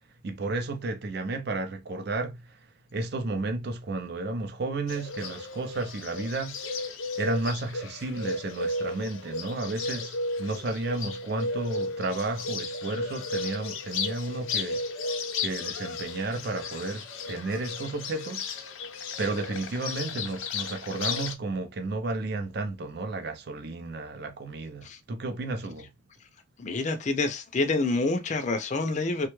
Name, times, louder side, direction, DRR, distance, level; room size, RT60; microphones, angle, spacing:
voice 1, 0.2-6.9 7.2-18.5 19.2-25.9, right 2 dB, 55° right, 0.5 m, -33 dB
Bird, 4.9-21.3, left 3 dB, 85° left, 0.6 m, -34 dB
voice 2, 26.6-29.3, left 3 dB, 35° left, 0.5 m, -27 dB
3.2 x 2.2 x 3.0 m
head